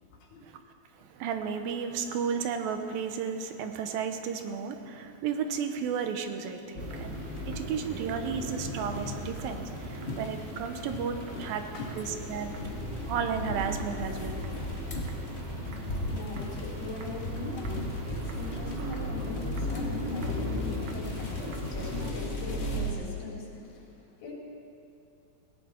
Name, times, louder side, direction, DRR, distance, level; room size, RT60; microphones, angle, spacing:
voice 1, 0.0-0.5 11.2-12.0 16.0-24.3, left 3 dB, 90° left, -3 dB, 4.8 m, -41 dB
voice 2, 1.0-7.2 7.5-11.6 12.0-12.5 13.1-14.4, right 7 dB, 90° right, 7 dB, 2.8 m, -33 dB
sound 1, 6.7-22.9, left 1 dB, 30° left, 1.2 m, -35 dB
sound 2, 6.8-22.1, right 4 dB, 70° right, 2.7 m, -45 dB
18.5 x 17.5 x 4.4 m, 2.6 s
omnidirectional pair, 4.0 m